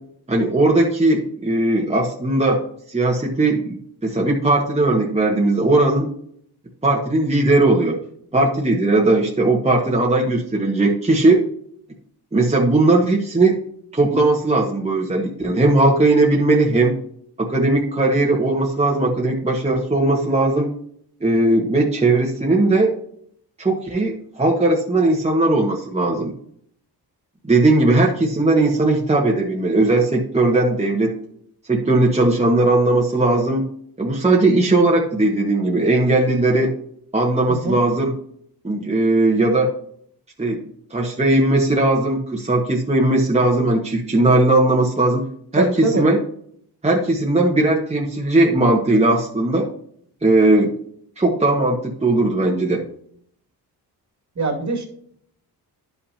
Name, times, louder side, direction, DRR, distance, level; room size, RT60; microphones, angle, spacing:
voice 1, 0.3-2.6 2.9-6.1 6.8-8.0 8.3-11.4 12.3-13.6 13.9-17.0 17.4-20.7 21.2-23.0 23.6-26.3 27.4-31.2 31.7-33.6 34.0-36.7 37.1-38.1 38.6-39.7 40.4-40.6 40.9-45.2 45.5-46.2 46.8-49.7 50.2-50.7 51.2-52.8, right 2 dB, 15° right, -2 dB, 1.5 m, -18 dB
voice 2, 37.5-37.8 45.5-46.1 54.4-54.8, right 2 dB, 45° right, 1 dB, 2.3 m, -22 dB
11.0 x 5.8 x 2.8 m, 0.65 s
cardioid pair, 85°, 40 cm